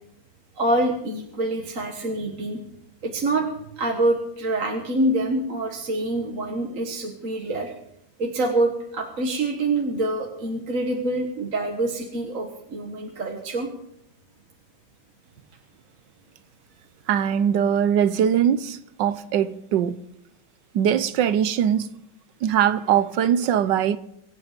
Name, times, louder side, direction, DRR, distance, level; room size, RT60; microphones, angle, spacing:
voice 1, 0.6-2.6 3.0-3.5 3.8-7.7 8.2-13.7, right 2 dB, 45° right, 1.8 m, -26 dB
voice 2, 17.1-20.0 20.7-22.0 22.4-24.0, right 9 dB, 70° right, 1.4 m, -21 dB
25.0 x 9.1 x 5.1 m
omnidirectional pair, 2.1 m